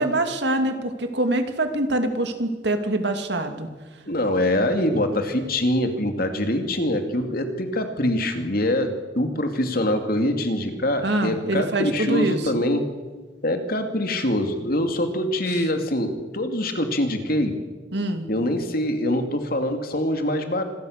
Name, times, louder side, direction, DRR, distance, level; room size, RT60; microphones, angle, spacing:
voice 1, 0.0-3.7 11.0-12.5 15.5-15.6 17.9-18.2, right 1 dB, 60° right, 6 dB, 2.6 m, -24 dB
voice 2, 4.1-12.8 13.4-17.6 18.3-20.6, left 1 dB, 50° left, 6 dB, 2.8 m, -24 dB
26.5 x 22.0 x 6.7 m, 1.3 s
head